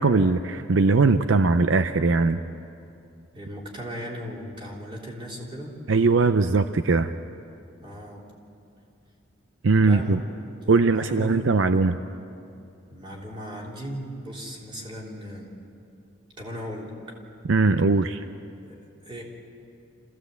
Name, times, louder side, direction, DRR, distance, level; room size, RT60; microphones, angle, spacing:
voice 1, 0.0-2.4 5.9-7.1 9.6-10.2 10.7-12.0 17.5-18.2, right 3 dB, 75° right, 10 dB, 0.6 m, -20 dB
voice 2, 3.3-5.8 7.8-8.2 9.8-10.3 10.6-11.5 12.9-15.5 16.4-16.9 18.6-19.2, equal, 25° right, -2 dB, 3.4 m, -37 dB
26.5 x 15.5 x 8.1 m, 2.6 s
head